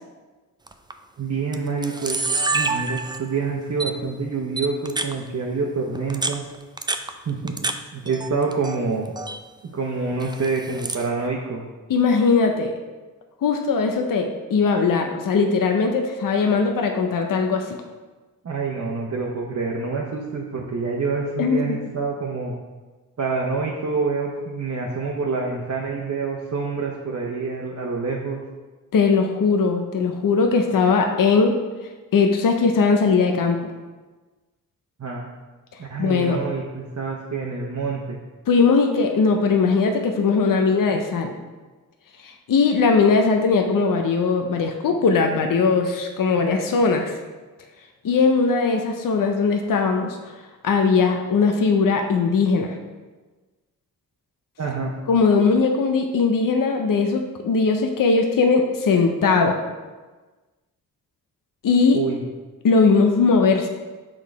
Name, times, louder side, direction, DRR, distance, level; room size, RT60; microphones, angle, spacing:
Camera, 0.7-0.9 1.5-1.6 1.8-3.4 3.8-3.9 4.6-5.1 5.9-7.8 8.1-8.8 9.0-9.4 10.2-11.1, right 3 dB, 15° right, 0.4 m, -27 dB
voice 1, 1.2-2.2 2.5-6.4 7.3-7.6 7.9-9.1 9.6-11.6 18.4-22.5 23.2-28.4 35.0-35.3 35.8-38.2 54.6-54.9 61.9-62.2, right 4 dB, 50° right, -2 dB, 0.9 m, -27 dB
voice 2, 11.9-12.7 13.4-17.8 21.4-21.6 28.9-31.5 32.1-33.7 36.0-36.4 38.5-41.3 42.2-47.2 48.0-50.3 50.6-52.8 55.1-59.5 61.6-62.0 62.6-63.7, left 4 dB, 65° left, 4 dB, 0.7 m, -19 dB
6.3 x 3.8 x 4.7 m, 1.3 s
cardioid pair, 55°, 35 cm